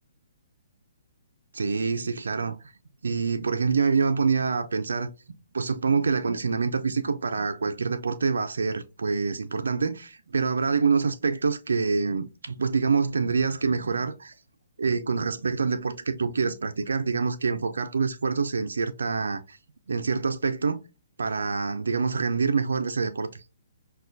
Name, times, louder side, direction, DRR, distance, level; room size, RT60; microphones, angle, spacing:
voice 1, 1.5-2.6 3.0-5.1 5.5-14.3 14.8-19.6 19.9-20.8 21.2-23.3, right 5 dB, 85° right, 0.3 m, -26 dB
5.4 x 2.2 x 2.5 m
hypercardioid pair, 140°, 0 cm